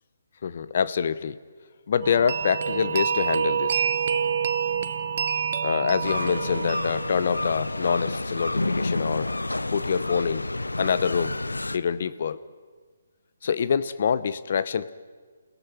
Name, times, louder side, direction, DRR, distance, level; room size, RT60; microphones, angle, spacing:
voice 1, 0.4-1.4 1.9-3.8 5.6-9.3 9.7-10.4 10.8-11.4 11.7-12.4 13.4-14.9, left 6 dB, 50° left, 15 dB, 0.8 m, -25 dB
sound 1, 2.0-7.7, right 7 dB, 45° right, 1.0 m, -27 dB
sound 2, 3.4-8.8, left 5 dB, 35° left, 2.7 m, -52 dB
sound 3, 6.0-11.8, left 2 dB, 85° left, 0.8 m, -29 dB
28.5 x 17.5 x 6.1 m, 1.5 s
figure-of-eight pair, 140°, 0 cm